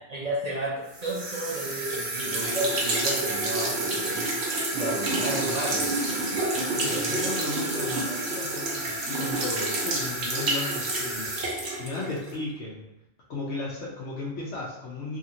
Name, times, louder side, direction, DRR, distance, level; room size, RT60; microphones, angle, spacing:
voice 1, 0.1-7.3, right 1 dB, 50° right, -5 dB, 0.5 m, -33 dB
sound 1, 0.9-12.4, right 2 dB, 70° right, 1.0 m, -28 dB
voice 2, 6.5-12.8 13.3-15.2, left 2 dB, 75° left, -5 dB, 0.9 m, -35 dB
2.8 x 2.8 x 2.5 m, 0.86 s
omnidirectional pair, 1.2 m